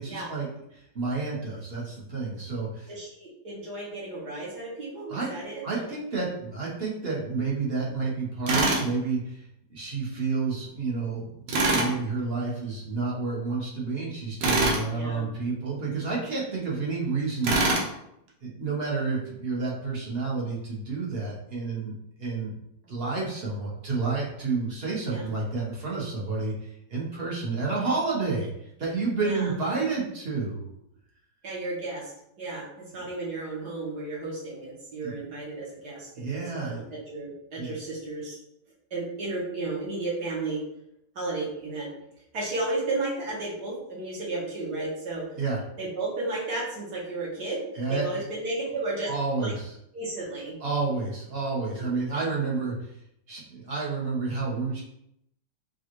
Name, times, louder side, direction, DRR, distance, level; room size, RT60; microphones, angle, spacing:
voice 1, 0.0-3.0 5.1-5.3 5.6-17.8 18.4-22.5 22.8-30.7 33.0-33.1 35.0-35.1 36.1-36.8 37.6-37.7 45.4-45.6 47.7-48.2 49.0-49.7 50.6-52.9 53.3-54.8, right 4 dB, 40° right, -4 dB, 1.0 m, -30 dB
voice 2, 2.9-5.9 14.9-15.3 25.1-25.3 29.2-29.5 31.4-32.1 32.4-32.6 32.9-36.8 37.1-38.4 38.9-40.6 41.2-41.9 42.3-45.2 45.8-49.1 49.4-49.5 49.9-50.6 51.8-51.9, right 2 dB, 65° right, -5 dB, 1.8 m, -33 dB
Tools, 8.5-8.9 11.5-11.9 14.4-14.8 17.4-17.9, right 2 dB, 85° right, 1.5 m, -23 dB
4.9 x 2.4 x 3.0 m, 0.79 s
omnidirectional pair, 1.9 m